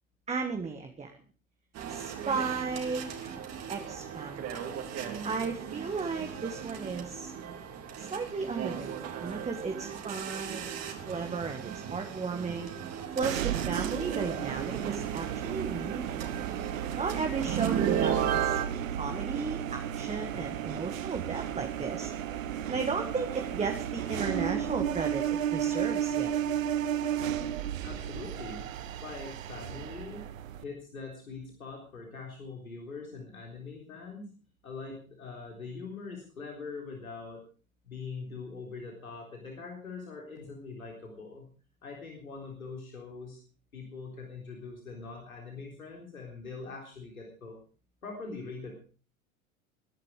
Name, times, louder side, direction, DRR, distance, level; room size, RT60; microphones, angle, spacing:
voice 1, 0.3-1.1 1.9-3.3 3.7-4.5 5.2-7.3 8.0-10.7 11.1-12.7 13.2-16.3 17.0-18.6 19.0-22.1 22.7-26.3, right 4 dB, 15° right, 4 dB, 1.8 m, -35 dB
sound 1, 1.7-18.6, right 9 dB, 40° right, 3.3 m, -36 dB
sound 2, 13.2-30.6, right 10 dB, 70° right, 1.0 m, -33 dB
voice 2, 27.8-28.6 29.0-30.2 30.6-34.4 34.6-37.4 37.8-41.5 41.8-43.4 43.7-47.6 48.0-48.7, left 4 dB, 80° left, 0 dB, 4.0 m, -43 dB
21.5 x 11.0 x 4.9 m, 0.39 s
figure-of-eight pair, 80°, 42 cm